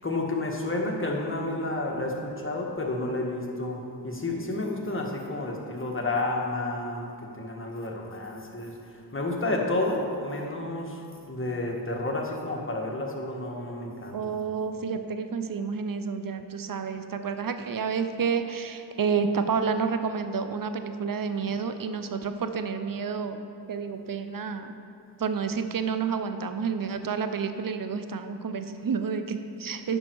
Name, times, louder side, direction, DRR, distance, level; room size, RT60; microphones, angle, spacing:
voice 1, 0.0-14.3, left 2 dB, 30° left, 0 dB, 1.5 m, -31 dB
voice 2, 14.1-23.4 23.7-24.7 25.2-30.0, right 6 dB, 55° right, 9 dB, 0.7 m, -30 dB
9.7 x 5.9 x 4.6 m, 2.5 s
cardioid pair, 40°, 42 cm